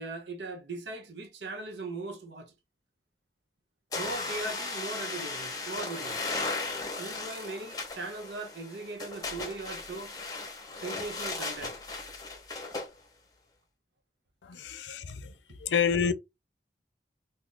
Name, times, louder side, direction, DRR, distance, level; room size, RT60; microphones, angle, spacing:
voice 1, 0.0-2.5 4.0-6.2 6.9-10.1 10.8-11.8 15.5-15.6, right 2 dB, 70° right, 0.6 m, -39 dB
sound 1, 3.9-12.9, left 3 dB, 20° left, 0.8 m, -36 dB
voice 2, 14.4-15.3 15.6-16.1, left 7 dB, 80° left, 0.5 m, -28 dB
2.6 x 2.4 x 3.7 m
head